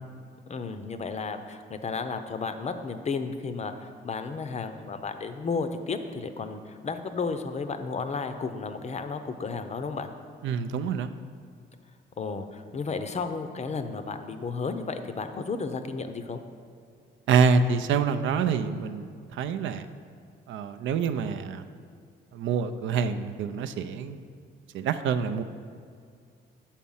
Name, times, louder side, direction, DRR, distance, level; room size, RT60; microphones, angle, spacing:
voice 1, 0.5-10.1 12.2-16.4, left 4 dB, 35° left, 8 dB, 0.5 m, -33 dB
voice 2, 10.4-11.1 17.3-19.9 20.5-21.6 22.3-24.2 24.7-25.4, right 6 dB, 75° right, 10 dB, 0.4 m, -26 dB
7.3 x 4.3 x 5.5 m, 2.3 s
cardioid pair, 90°, 20 cm